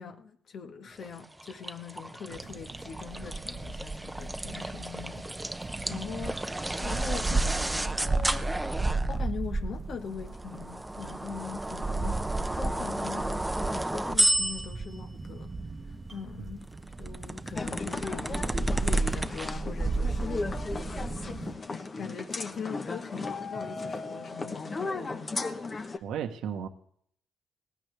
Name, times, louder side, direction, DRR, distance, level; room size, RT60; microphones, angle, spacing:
voice 1, 0.0-5.6 5.9-8.5 8.9-15.5 16.1-16.7 17.0-20.7 21.3-26.0, left 6 dB, 60° left, 1.7 m, -42 dB
sound 1, 1.0-9.3 10.2-15.0 16.6-19.5, right 1 dB, 10° right, 0.8 m, -33 dB
sound 2, 2.3-21.5, right 3 dB, 30° right, 1.1 m, -34 dB
sound 3, 17.5-26.0, left 3 dB, 35° left, 1.2 m, -36 dB
voice 2, 26.0-26.7, right 8 dB, 80° right, 1.4 m, -34 dB
18.5 x 16.0 x 3.5 m
cardioid pair, 90°, 0 cm